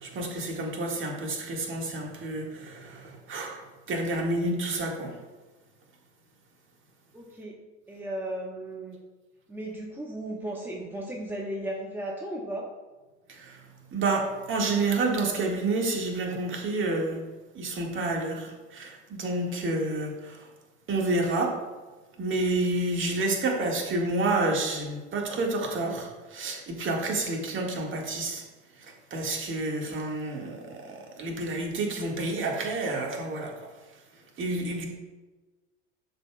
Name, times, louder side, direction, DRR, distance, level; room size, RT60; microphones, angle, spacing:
voice 1, 0.0-3.6 3.9-5.1 13.3-13.6 13.9-17.2 17.5-20.5 20.9-21.6 22.2-28.4 28.8-33.7 34.4-34.8, right 2 dB, 35° right, 0 dB, 2.0 m, -29 dB
voice 2, 7.1-7.5 7.9-9.0 9.5-12.6, right 1 dB, 5° right, -1 dB, 1.1 m, -35 dB
11.5 x 6.9 x 2.4 m, 1.2 s
figure-of-eight pair, 70°, 35 cm